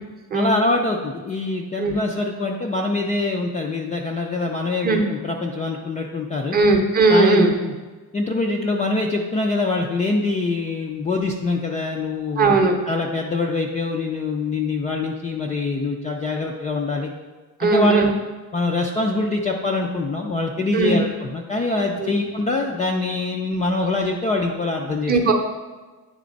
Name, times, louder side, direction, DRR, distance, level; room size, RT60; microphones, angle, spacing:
voice 1, 0.3-6.6 7.1-7.7 8.1-12.6 12.9-17.1 17.6-18.0 18.5-25.2, left 3 dB, 20° left, -1 dB, 0.3 m, -24 dB
voice 2, 6.5-7.5 12.4-12.8 17.6-18.1 20.7-21.0 22.0-22.1 25.1-25.3, right 3 dB, 25° right, 2 dB, 0.7 m, -17 dB
9.3 x 3.4 x 5.1 m, 1.3 s
cardioid pair, 175°, 37 cm